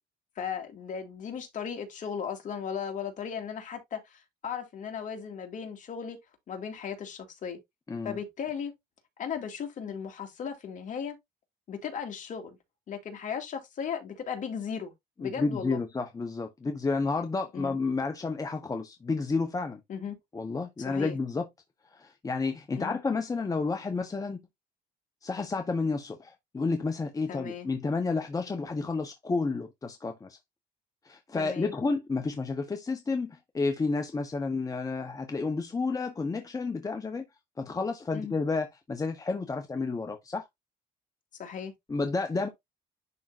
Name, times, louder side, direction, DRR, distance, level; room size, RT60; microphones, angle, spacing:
voice 1, 0.4-6.2 6.5-7.6 8.0-8.7 9.2-11.2 11.7-12.6 12.9-14.9 15.2-15.8 17.5-17.8 19.9-20.1 20.8-21.2 22.8-23.0 27.3-27.7 31.4-31.7 38.1-38.3 41.4-41.7, left 7 dB, 50° left, 2.5 m, -36 dB
voice 2, 15.2-19.8 20.3-21.5 21.9-24.4 25.2-30.4 31.0-37.2 37.6-40.5 41.9-42.5, left 3 dB, 20° left, 1.0 m, -31 dB
11.0 x 3.7 x 2.6 m
cardioid pair, 110°, 17 cm